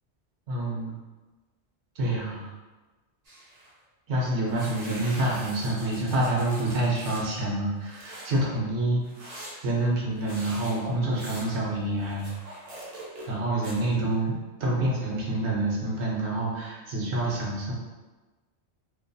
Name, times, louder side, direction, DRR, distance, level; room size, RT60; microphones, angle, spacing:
voice 1, 0.5-1.0 2.0-2.5 4.1-9.0 9.6-12.3 13.3-14.3 14.6-17.7, right 1 dB, 70° right, -4 dB, 1.0 m, -27 dB
sound 1, 3.2-3.7 4.5-7.4 7.8-8.3 9.0-13.4 13.6-14.2, right 1 dB, 45° right, 0.6 m, -44 dB
2.6 x 2.5 x 2.2 m, 1.2 s
omnidirectional pair, 1.2 m